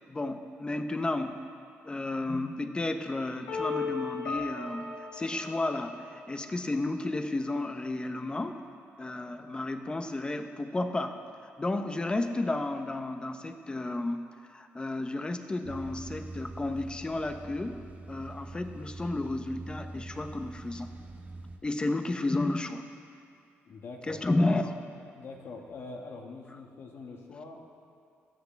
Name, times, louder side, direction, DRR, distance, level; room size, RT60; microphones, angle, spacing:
voice 1, 0.1-1.4 1.8-8.6 9.0-11.2 11.6-14.3 14.5-20.9 21.6-22.8 24.1-24.7, left 2 dB, 20° left, 7 dB, 0.9 m, -32 dB
sound 1, 3.5-6.4, left 4 dB, 80° left, 3.8 m, -36 dB
sound 2, 15.6-21.6, right 2 dB, 35° right, 1.0 m, -44 dB
voice 2, 23.7-24.3 25.1-27.7, left 3 dB, 60° left, 1 dB, 1.8 m, -44 dB
17.5 x 13.0 x 3.5 m, 2.4 s
cardioid pair, 90°, 5 cm